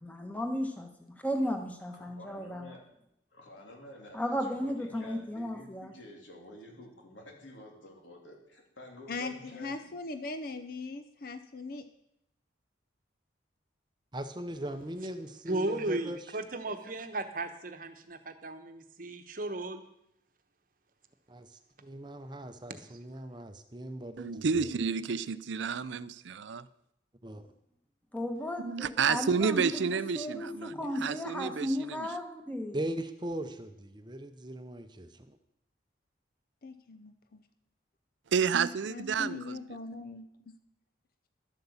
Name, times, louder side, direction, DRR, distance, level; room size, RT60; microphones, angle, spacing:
voice 1, 0.0-2.7 4.1-5.9 28.1-32.8, equal, 10° left, 4 dB, 1.3 m, -35 dB
voice 2, 1.9-2.8 3.3-9.9, left 1 dB, 75° left, 0 dB, 3.2 m, -50 dB
voice 3, 9.1-11.9 36.6-37.4 38.9-40.5, left 3 dB, 50° left, 10 dB, 0.6 m, -40 dB
voice 4, 14.1-16.2 21.3-24.7 27.2-27.4 32.7-35.4, right 1 dB, 25° right, 9 dB, 0.7 m, -39 dB
voice 5, 15.5-19.8, right 2 dB, 45° right, 8 dB, 1.0 m, -35 dB
voice 6, 24.2-26.6 28.6-32.1 38.3-39.6, right 6 dB, 70° right, 16 dB, 0.5 m, -30 dB
12.0 x 7.9 x 7.1 m, 0.78 s
head